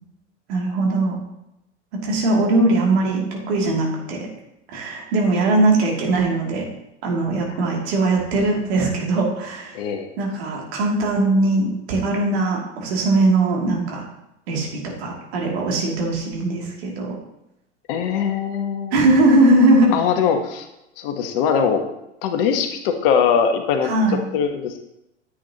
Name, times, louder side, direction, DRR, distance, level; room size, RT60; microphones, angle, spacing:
voice 1, 0.5-1.2 1.9-4.3 4.7-6.6 7.0-9.8 10.2-14.0 14.5-17.2 18.9-20.0 23.8-24.2, right 2 dB, 60° right, -1 dB, 2.7 m, -20 dB
voice 2, 9.7-10.1 17.9-19.0 19.9-20.7 21.0-21.8 22.2-24.8, left 7 dB, 50° left, 6 dB, 1.3 m, -21 dB
10.0 x 8.1 x 2.9 m, 0.88 s
figure-of-eight pair, 95°, 35 cm